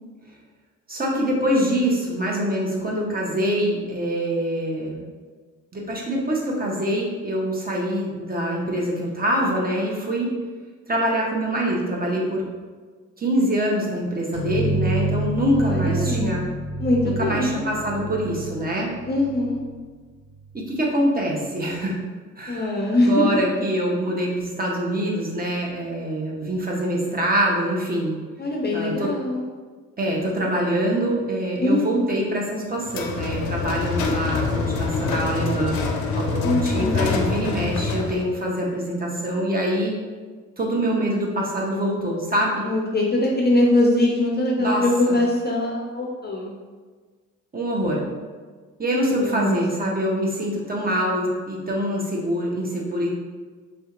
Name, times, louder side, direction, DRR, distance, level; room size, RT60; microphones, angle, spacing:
voice 1, 0.9-5.0 5.7-10.3 10.9-12.4 13.2-16.4 17.2-18.9 20.5-22.0 22.4-28.1 28.7-29.1 30.0-35.8 36.2-39.9 40.6-42.7 44.6-45.2 47.5-48.0 48.8-53.1, right 1 dB, 25° right, -3 dB, 0.8 m, -24 dB
sound 1, 14.3-19.9, right 2 dB, 80° right, 1.2 m, -28 dB
voice 2, 15.5-16.3 16.8-17.7 19.1-19.6 22.5-23.4 28.4-29.4 31.6-32.1 36.4-37.0 42.6-46.5 49.1-50.0, left 1 dB, 25° left, -2 dB, 0.5 m, -22 dB
sound 2, 32.9-38.3, left 4 dB, 75° left, 0.5 m, -25 dB
3.4 x 2.7 x 2.4 m, 1.5 s
hypercardioid pair, 40°, 39 cm